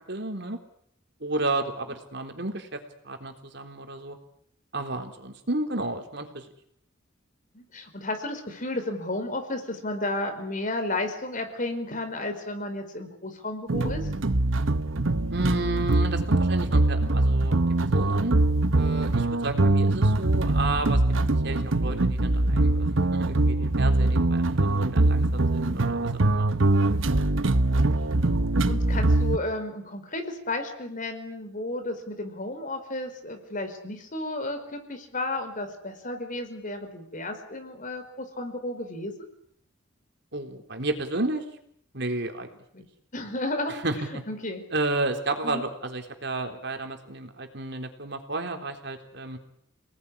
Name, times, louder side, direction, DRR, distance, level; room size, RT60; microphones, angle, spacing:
voice 1, 0.1-0.6 1.2-4.2 4.7-6.5 15.3-18.4 18.7-21.0 21.3-26.5 40.3-41.4 41.9-42.5 43.6-44.0 44.7-49.4, right 2 dB, 60° right, 5 dB, 3.8 m, -32 dB
voice 2, 7.5-14.1 28.6-39.1 42.7-42.8 43.1-43.7 44.1-44.6 45.4-45.6, left 2 dB, 45° left, 7 dB, 4.9 m, -33 dB
sound 1, 13.7-29.4, right 2 dB, 85° right, 1.1 m, -23 dB
29.5 x 19.5 x 9.9 m, 0.70 s
head